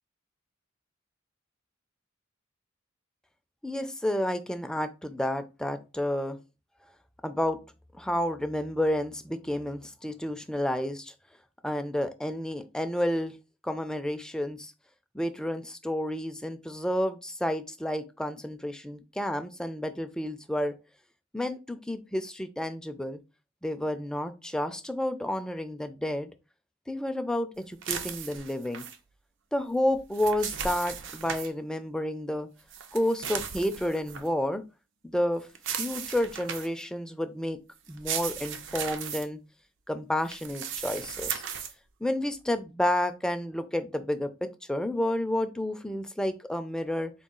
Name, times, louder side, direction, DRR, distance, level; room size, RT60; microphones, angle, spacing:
voice 1, 3.6-6.4 7.2-7.6 7.9-11.1 11.6-13.3 13.6-14.7 15.1-20.7 21.3-23.2 23.6-26.3 26.9-28.8 29.5-32.5 32.9-34.6 35.0-35.5 35.8-37.6 37.9-39.4 39.9-41.4 42.0-47.1, left 1 dB, 5° left, 0.4 m, -30 dB
sound 1, 27.8-29.0 29.9-31.5 32.7-34.3 35.5-36.8 37.9-39.2 40.2-41.7, right 7 dB, 65° right, 0.5 m, -36 dB
3.9 x 2.3 x 3.7 m
head